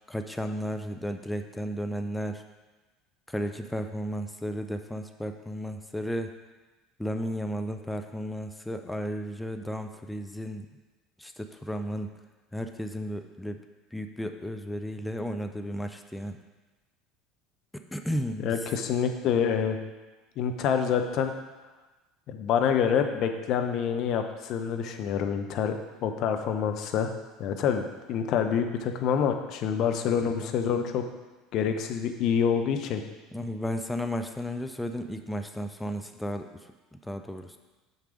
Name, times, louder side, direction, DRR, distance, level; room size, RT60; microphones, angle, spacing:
voice 1, 0.1-2.4 3.3-6.3 7.0-10.7 11.2-12.1 12.5-13.6 13.9-16.4 17.7-18.5 30.4-30.5 33.3-36.5 36.9-37.6, equal, 5° left, 6 dB, 0.6 m, -33 dB
voice 2, 18.4-19.8 20.4-21.3 22.3-25.7 26.0-27.1 27.4-31.0 31.5-33.0, left 7 dB, 50° left, 6 dB, 0.8 m, -27 dB
6.6 x 6.5 x 5.0 m, 1.2 s
figure-of-eight pair, 65°, 0 cm